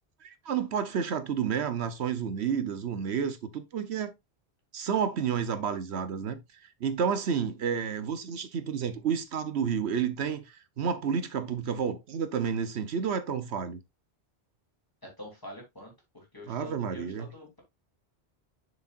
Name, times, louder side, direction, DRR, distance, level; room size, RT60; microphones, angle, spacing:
voice 1, 0.2-4.1 4.7-6.4 6.8-13.8 16.5-17.3, right 7 dB, 80° right, 1.1 m, -30 dB
voice 2, 15.0-17.6, equal, 20° left, 3.1 m, -46 dB
7.2 x 6.4 x 2.5 m
omnidirectional pair, 1.1 m